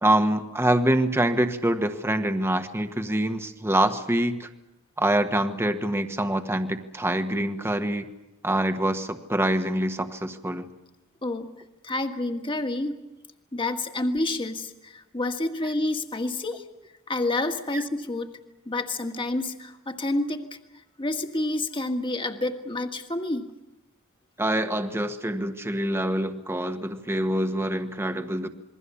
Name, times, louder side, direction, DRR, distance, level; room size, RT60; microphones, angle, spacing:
voice 1, 0.0-4.5 5.0-8.1 8.4-10.7 17.7-17.8 24.4-28.5, right 1 dB, 10° right, 7 dB, 1.3 m, -25 dB
voice 2, 11.2-11.5 11.8-12.9 13.5-16.6 17.1-18.3 18.6-20.4 21.0-23.5, left 2 dB, 25° left, 5 dB, 1.7 m, -28 dB
27.5 x 22.0 x 7.1 m, 0.98 s
head